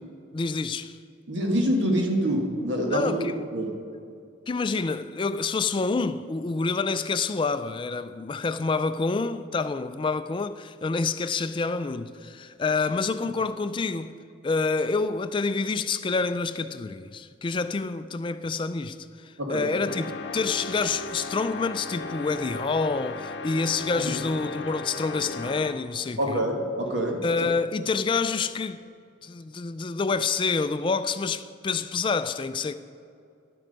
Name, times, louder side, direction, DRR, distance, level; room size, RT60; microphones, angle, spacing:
voice 1, 0.3-1.0 2.9-3.4 4.5-14.1 14.4-26.5 27.2-28.8 29.2-32.7, left 4 dB, 25° left, 0.3 m, -27 dB
voice 2, 1.3-3.7 13.2-13.3 19.4-19.7 26.2-27.2, equal, 70° right, 1.5 m, -26 dB
sound 1, 19.9-25.9, left 3 dB, 65° left, 0.6 m, -36 dB
11.0 x 7.7 x 5.2 m
head